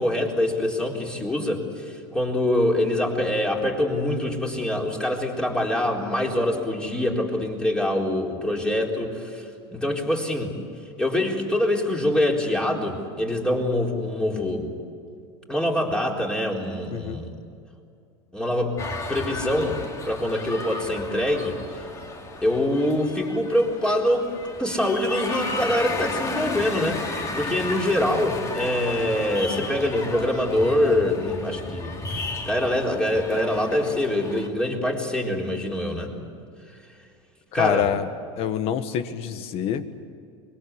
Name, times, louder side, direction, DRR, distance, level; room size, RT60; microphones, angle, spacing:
voice 1, 0.0-10.5 11.0-14.7 15.5-17.3 18.3-18.8 19.1-19.8 20.0-21.6 22.4-24.3 24.6-31.9 32.4-36.1 37.5-37.9, left 1 dB, 5° left, 0 dB, 4.1 m, -24 dB
sound 1, 18.8-34.5, left 3 dB, 20° left, 2.6 m, -34 dB
voice 2, 37.5-38.1 38.3-40.0, left 9 dB, 45° left, 11 dB, 1.6 m, -26 dB
25.5 x 23.0 x 8.3 m, 2.4 s
supercardioid pair, 140°, 14 cm